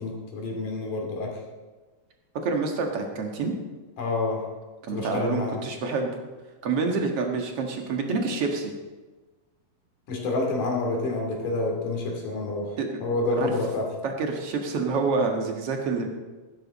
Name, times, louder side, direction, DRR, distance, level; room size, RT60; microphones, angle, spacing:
voice 1, 0.0-1.4 4.0-4.4 4.9-5.6 10.1-13.9, left 2 dB, 65° left, 0 dB, 4.1 m, -28 dB
voice 2, 2.4-3.5 4.8-6.2 6.6-8.7 12.8-12.9 13.4-13.5 14.0-16.1, right 4 dB, 50° right, 2 dB, 2.3 m, -27 dB
15.0 x 13.0 x 4.2 m, 1.3 s
omnidirectional pair, 3.9 m